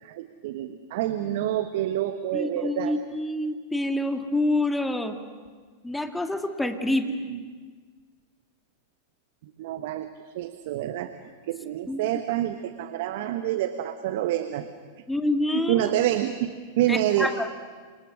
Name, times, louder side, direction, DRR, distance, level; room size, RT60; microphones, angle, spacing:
voice 1, 0.0-2.9 6.9-7.4 9.4-11.1 11.4-14.7 15.5-17.3, right 12 dB, 60° right, 10 dB, 1.2 m, -28 dB
voice 2, 2.3-5.2 5.8-7.1 11.9-12.1 15.1-15.9 16.9-17.5, left 1 dB, 5° left, 6 dB, 2.2 m, -27 dB
28.5 x 26.0 x 6.3 m, 1.5 s
figure-of-eight pair, 90°, 0 cm